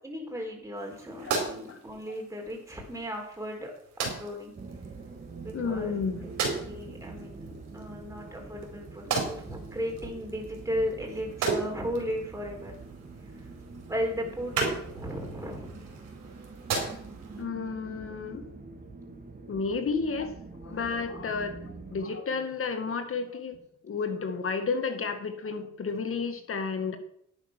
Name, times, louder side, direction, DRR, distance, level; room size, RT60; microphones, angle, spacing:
voice 1, 0.0-3.7 4.0-4.5 5.4-5.9 6.5-12.7 13.9-15.9, equal, 10° right, 0 dB, 4.3 m, -35 dB
sound 1, 0.8-17.4, right 4 dB, 90° right, 4.5 m, -37 dB
sound 2, 4.5-22.1, right 4 dB, 30° right, 2.3 m, -45 dB
voice 2, 5.5-6.3 17.4-18.4 19.5-20.4 20.6-27.0, left 4 dB, 45° left, 7 dB, 2.0 m, -32 dB
11.0 x 9.0 x 6.2 m, 0.68 s
cardioid pair, 90°, 30 cm